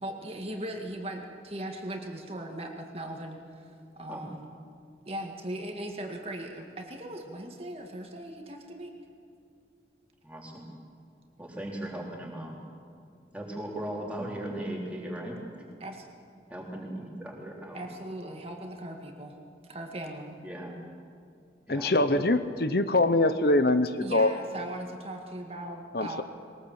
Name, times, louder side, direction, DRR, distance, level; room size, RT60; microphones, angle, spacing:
voice 1, 0.0-4.4 5.1-8.9 15.8-16.1 17.7-19.4 19.7-20.4 24.0-26.2, right 1 dB, 35° right, 2 dB, 2.0 m, -39 dB
voice 2, 10.2-10.7 11.4-12.5 13.3-15.7 16.5-17.8 20.4-20.8 21.7-22.2, right 1 dB, 10° right, -2 dB, 3.8 m, -38 dB
voice 3, 21.7-24.3 25.9-26.2, left 2 dB, 60° left, 11 dB, 0.9 m, -24 dB
22.0 x 19.5 x 8.2 m, 2.5 s
head